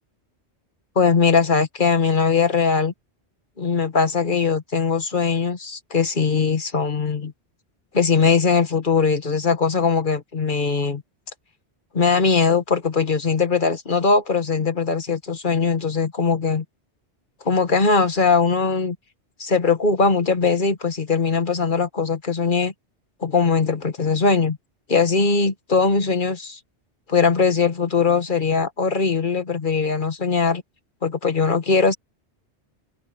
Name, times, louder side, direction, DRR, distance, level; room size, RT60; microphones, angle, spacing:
voice 1, 0.9-2.9 3.6-7.3 7.9-11.0 11.9-16.6 17.4-18.9 19.4-22.7 23.2-24.6 24.9-26.6 27.1-30.6 31.0-31.9, left 5 dB, 50° left, 1.7 m, -20 dB
open air
omnidirectional pair, 1.1 m